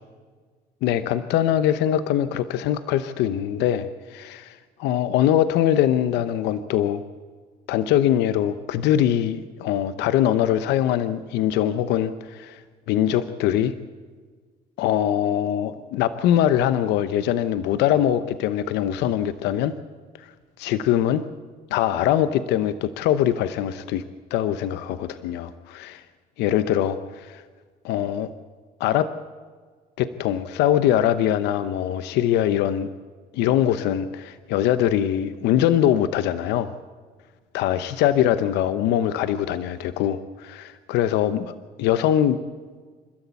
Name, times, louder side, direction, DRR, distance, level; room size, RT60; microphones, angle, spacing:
voice 1, 0.8-7.0 7.7-12.6 12.9-13.7 14.8-19.7 20.2-20.3 20.6-21.2 21.7-24.0 24.3-26.0 26.4-27.4 27.8-28.3 28.8-29.1 30.0-32.9 33.3-36.7 37.5-42.4, left 11 dB, 90° left, 12 dB, 0.8 m, -22 dB
28.5 x 13.0 x 8.3 m, 1.5 s
cardioid pair, 110°, 17 cm